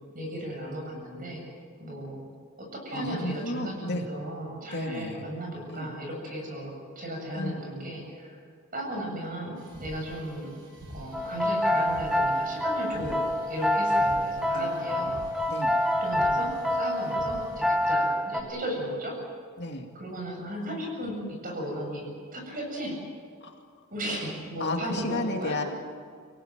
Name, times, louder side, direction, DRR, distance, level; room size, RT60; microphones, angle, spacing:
voice 1, 0.1-1.5 1.8-2.2 2.6-8.4 8.7-10.5 10.9-15.2 16.0-16.5 16.8-19.1 19.9-21.2 21.4-23.0 23.9-25.6, right 1 dB, 40° right, 0 dB, 7.9 m, -35 dB
voice 2, 2.9-4.0 4.7-5.3 5.7-5.9 7.4-7.6 14.5-15.1 15.5-15.8 19.6-19.9 23.4-23.5 24.6-25.6, left 2 dB, 50° left, 2 dB, 2.4 m, -33 dB
sound 1, 9.6-17.8, equal, 55° right, 4.5 m, -47 dB
sound 2, 11.1-18.4, left 1 dB, ahead, 1.5 m, -27 dB
26.0 x 17.5 x 9.2 m, 2.2 s
head